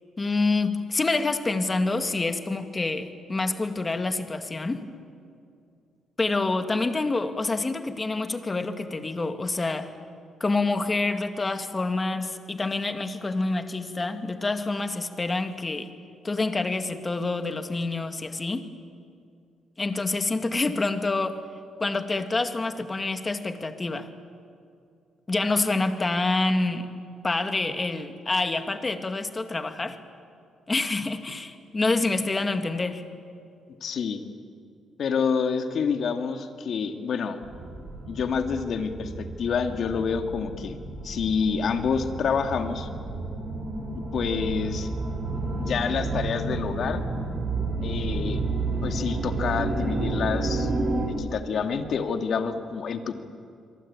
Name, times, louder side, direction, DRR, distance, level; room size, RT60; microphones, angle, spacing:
voice 1, 0.2-4.9 6.2-9.9 10.4-15.9 16.2-18.7 19.8-21.4 21.8-24.1 25.3-27.0 27.2-30.0 30.7-33.0, left 3 dB, 25° left, 7 dB, 2.0 m, -27 dB
voice 2, 33.8-34.2 35.0-37.4 38.1-40.8 41.0-42.9 44.1-44.9 45.6-47.0 47.8-48.4 48.8-50.7 51.1-53.1, left 6 dB, 60° left, 6 dB, 2.2 m, -28 dB
sound 1, 37.4-51.1, right 2 dB, 45° right, 7.8 m, -31 dB
26.0 x 23.5 x 8.8 m, 2.4 s
cardioid pair, 105°, 0 cm